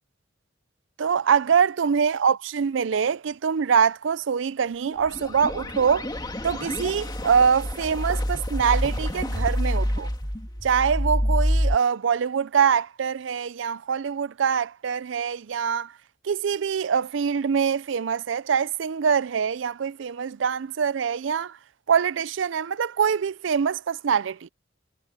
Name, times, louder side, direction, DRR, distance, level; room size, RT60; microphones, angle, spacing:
voice 1, 1.0-6.1 6.4-10.1 10.6-15.9 16.2-21.6 21.9-24.5, right 7 dB, 70° right, 0.4 m, -24 dB
sound 1, 4.9-11.7, equal, 20° left, 2.3 m, -27 dB
head